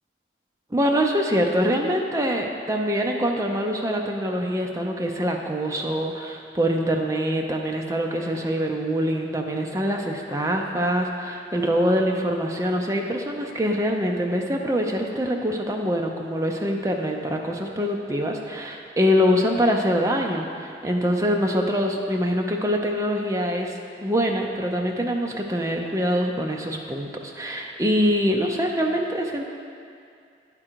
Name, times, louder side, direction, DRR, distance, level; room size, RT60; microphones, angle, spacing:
voice 1, 0.7-23.7 24.0-29.4, equal, 15° right, 1 dB, 0.5 m, -24 dB
9.9 x 3.7 x 4.5 m, 2.4 s
head